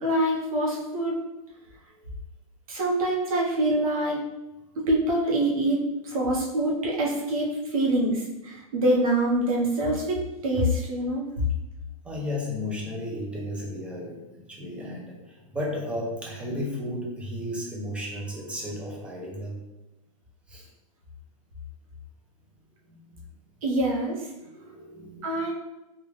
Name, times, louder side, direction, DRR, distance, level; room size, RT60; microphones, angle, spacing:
voice 1, 0.0-1.2 2.7-4.2 4.8-11.2 23.6-24.3 25.2-25.5, right 1 dB, 75° right, -3 dB, 1.2 m, -25 dB
voice 2, 12.0-19.6 20.5-20.7 22.9-23.2 24.4-25.5, left 1 dB, 5° right, -3 dB, 0.7 m, -34 dB
3.5 x 2.5 x 3.2 m, 0.97 s
hypercardioid pair, 150°, 19 cm